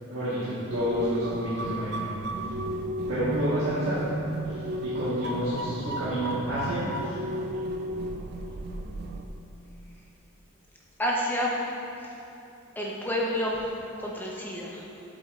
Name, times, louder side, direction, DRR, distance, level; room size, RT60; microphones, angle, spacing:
voice 1, 0.0-2.1 3.1-4.1 4.8-7.1, right 1 dB, 90° right, -12 dB, 1.5 m, -29 dB
sound 1, 0.7-9.3, right 1 dB, 50° right, 0.4 m, -33 dB
voice 2, 11.0-11.6 12.8-13.6 14.0-14.8, equal, 10° left, -4 dB, 0.8 m, -29 dB
8.5 x 7.5 x 2.5 m, 2.8 s
head